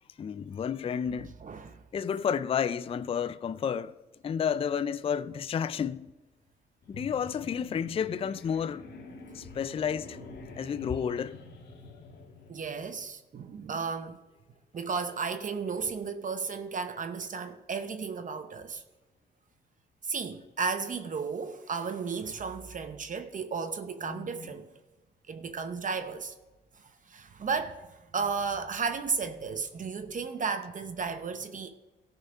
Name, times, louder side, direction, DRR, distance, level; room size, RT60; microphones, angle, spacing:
voice 1, 0.2-1.3 1.9-4.0 4.2-6.1 6.9-8.8 9.3-10.2 10.6-11.4 24.0-24.5, left 7 dB, 30° left, 0.4 m, -31 dB
voice 2, 1.4-1.8 12.5-14.2 14.7-18.8 20.0-24.7 25.3-26.3 26.8-31.7, right 5 dB, 40° right, 0.8 m, -34 dB
sound 1, 6.8-13.0, left 3 dB, 55° left, 1.9 m, -47 dB
13.5 x 5.6 x 5.6 m
cardioid pair, 90°, 20 cm